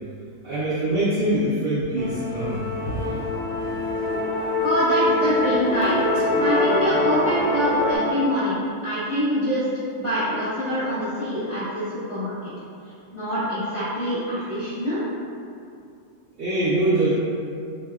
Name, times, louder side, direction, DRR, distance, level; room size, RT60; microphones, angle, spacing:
voice 1, 0.4-2.8 16.4-17.1, right 1 dB, 80° right, -9 dB, 0.5 m, -23 dB
Musical instrument, 2.0-8.0, left 2 dB, 70° left, 1.0 m, -24 dB
voice 2, 4.6-6.0 6.4-9.6 10.0-12.5 13.1-15.0, equal, 25° left, -17 dB, 0.9 m, -25 dB
4.2 x 2.0 x 2.3 m, 2.5 s
omnidirectional pair, 1.6 m